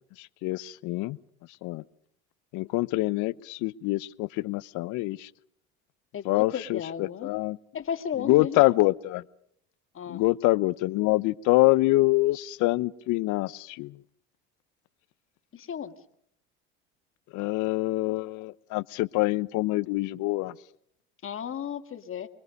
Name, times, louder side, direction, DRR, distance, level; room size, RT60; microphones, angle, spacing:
voice 1, 0.2-1.2 1.6-1.8 2.5-5.3 6.2-7.6 8.2-9.2 10.1-13.9 17.3-20.5, left 20 dB, 60° left, 18 dB, 0.9 m, -25 dB
voice 2, 6.1-7.3 7.7-8.6 9.9-10.2 15.5-15.9 21.2-22.3, left 8 dB, 40° left, 7 dB, 2.1 m, -34 dB
25.5 x 22.0 x 5.4 m, 0.69 s
hypercardioid pair, 85°, 33 cm